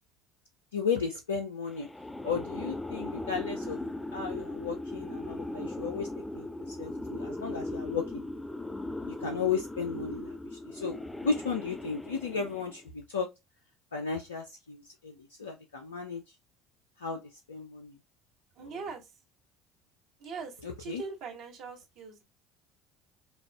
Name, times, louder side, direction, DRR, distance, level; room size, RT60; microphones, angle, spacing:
voice 1, 0.7-1.9 2.2-3.8 4.1-6.1 6.3-8.2 9.2-13.3 13.9-16.2 17.0-17.2 17.5-17.9 20.6-21.0, left 5 dB, 85° left, 0.4 m, -34 dB
sound 1, 1.7-12.9, left 2 dB, 10° left, 0.4 m, -38 dB
voice 2, 18.5-19.2 20.2-22.2, right 5 dB, 60° right, 1.4 m, -41 dB
5.0 x 2.4 x 2.3 m
hypercardioid pair, 65°, 0 cm